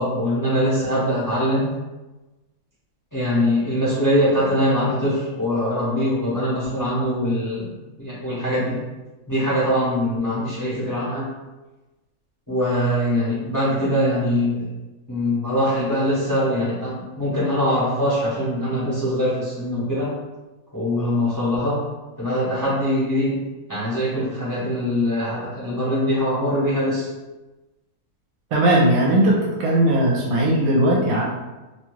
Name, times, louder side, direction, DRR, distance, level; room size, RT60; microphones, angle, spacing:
voice 1, 0.0-1.7 3.1-7.7 8.0-8.8 9.3-11.3 12.5-14.8 15.1-20.1 20.7-21.9 22.2-23.4 23.7-27.1, equal, 15° left, -9 dB, 0.8 m, -22 dB
voice 2, 28.5-31.2, right 1 dB, 70° right, -3 dB, 1.0 m, -18 dB
2.7 x 2.3 x 3.0 m, 1.1 s
omnidirectional pair, 1.6 m